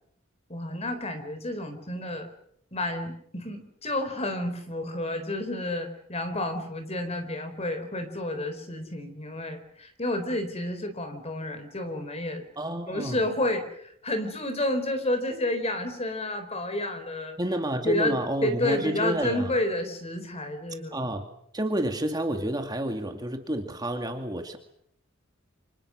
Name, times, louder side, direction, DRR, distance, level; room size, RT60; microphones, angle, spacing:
voice 1, 0.5-2.3 2.7-12.4 12.9-17.4 17.8-21.0, left 1 dB, 30° left, 8 dB, 4.2 m, -30 dB
voice 2, 12.6-13.2 17.4-19.5 20.9-21.3 21.5-24.6, right 1 dB, 20° right, 5 dB, 2.3 m, -30 dB
29.0 x 26.0 x 6.4 m, 0.70 s
head